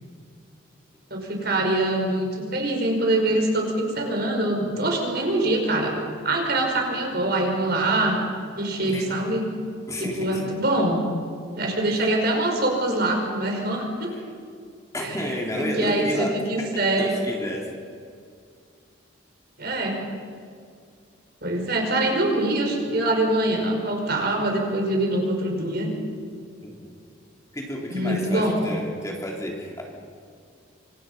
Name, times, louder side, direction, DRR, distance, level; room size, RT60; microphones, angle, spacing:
voice 1, 1.1-5.9 6.2-8.2 8.5-9.4 10.0-11.0 11.5-14.1 15.0-15.3 15.6-17.1 19.6-20.0 21.4-25.9 27.9-28.6, right 1 dB, 50° right, 1 dB, 5.4 m, -24 dB
voice 2, 9.9-10.5 14.2-14.3 14.9-16.7 17.0-17.7 26.6-27.0 27.5-29.8, equal, 15° left, -1 dB, 3.4 m, -31 dB
27.5 x 26.5 x 5.7 m, 2.2 s
head